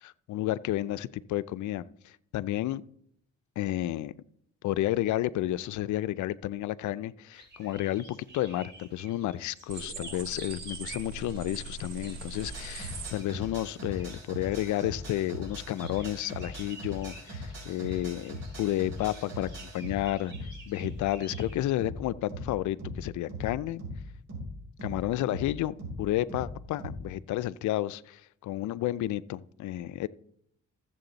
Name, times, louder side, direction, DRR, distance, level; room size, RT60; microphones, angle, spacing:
voice 1, 0.0-2.8 3.6-4.1 4.6-20.3 20.7-23.8 24.8-30.1, left 14 dB, 75° left, 0.5 m, -31 dB
sound 1, 7.3-21.6, right 2 dB, 35° right, 2.8 m, -51 dB
sound 2, 9.7-13.1, right 3 dB, 85° right, 2.9 m, -41 dB
sound 3, 12.4-27.1, equal, 60° right, 5.1 m, -40 dB
14.0 x 7.6 x 3.9 m
cardioid pair, 90°, 30 cm